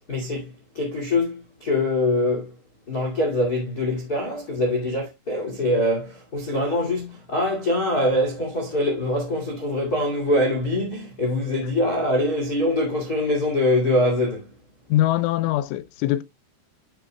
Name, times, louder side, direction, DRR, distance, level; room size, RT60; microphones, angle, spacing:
voice 1, 0.1-2.5 2.9-14.5, left 1 dB, 35° left, 1.5 m, -24 dB
voice 2, 14.9-16.2, left 14 dB, 80° left, 3.0 m, -22 dB
12.0 x 6.8 x 2.2 m
omnidirectional pair, 5.8 m